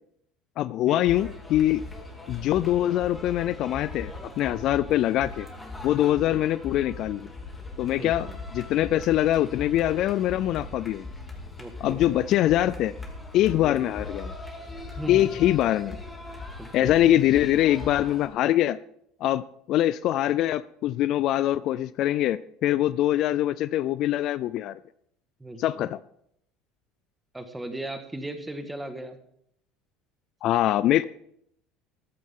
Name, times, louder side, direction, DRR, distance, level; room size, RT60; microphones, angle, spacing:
voice 1, 0.6-1.8 2.3-5.5 5.8-7.3 7.8-8.3 8.5-11.1 11.8-12.9 13.3-14.3 15.1-16.0 16.7-18.8 19.2-24.8 25.6-26.0 30.4-31.0, left 13 dB, 50° left, 16 dB, 0.4 m, -23 dB
sound 1, 1.0-18.3, left 2 dB, 10° left, 2.6 m, -40 dB
voice 2, 6.0-6.4 8.0-8.4 11.6-12.0 13.6-13.9 15.0-15.3 16.6-17.0 25.4-25.9 27.3-29.2, right 1 dB, 5° right, 7 dB, 1.5 m, -37 dB
14.0 x 13.5 x 3.7 m, 0.72 s
cardioid pair, 145°, 0 cm